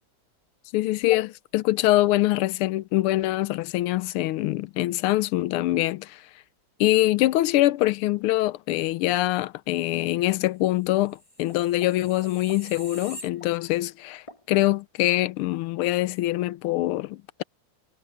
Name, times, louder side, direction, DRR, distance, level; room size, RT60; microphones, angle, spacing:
voice 1, 0.7-6.2 6.8-17.4, left 16 dB, 90° left, 1.5 m, -24 dB
sound 1, 11.0-13.9 14.3-14.4, left 1 dB, 15° left, 2.0 m, -45 dB
omnidirectional pair, 2.4 m